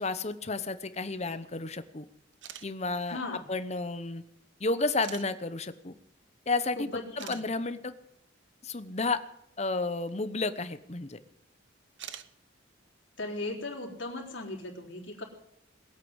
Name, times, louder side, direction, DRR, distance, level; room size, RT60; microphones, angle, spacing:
voice 1, 0.0-2.0 2.6-4.2 4.6-5.9 6.5-6.9 7.3-7.9 8.6-9.2 9.6-11.2, left 3 dB, 35° left, 12 dB, 0.9 m, -31 dB
sound 1, 2.3-2.7 3.7-3.8 5.0-5.3 6.7-6.8 7.2-7.4 10.1-10.2 11.9-12.3, right 10 dB, 70° right, 0.8 m, -43 dB
voice 2, 3.1-3.5 6.8-7.4 13.2-15.2, left 2 dB, 75° left, -1 dB, 3.6 m, -37 dB
20.0 x 8.6 x 8.0 m, 0.74 s
head